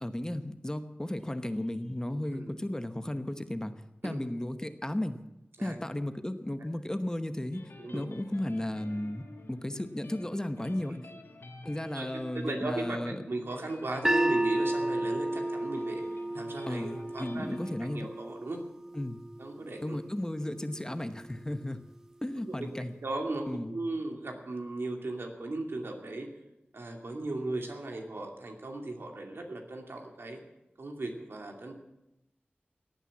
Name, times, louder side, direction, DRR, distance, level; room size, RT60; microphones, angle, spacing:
voice 1, 0.0-3.7 4.0-5.2 5.6-7.6 7.9-11.0 11.6-13.2 16.7-18.1 18.9-19.2 19.8-21.8 22.2-22.9 23.5-23.8, left 1 dB, 15° left, 10 dB, 1.0 m, -34 dB
sound 1, 7.5-17.7, left 2 dB, 85° left, 2.9 m, -50 dB
voice 2, 11.9-16.0 16.3-18.6 19.4-20.0 22.5-22.7 23.0-26.3 26.7-30.4 30.8-31.8, right 2 dB, 80° right, 2 dB, 2.6 m, -37 dB
sound 2, 14.0-20.2, right 1 dB, 15° right, 0.7 m, -32 dB
17.0 x 9.1 x 8.5 m, 0.92 s
wide cardioid pair, 70°, 4 cm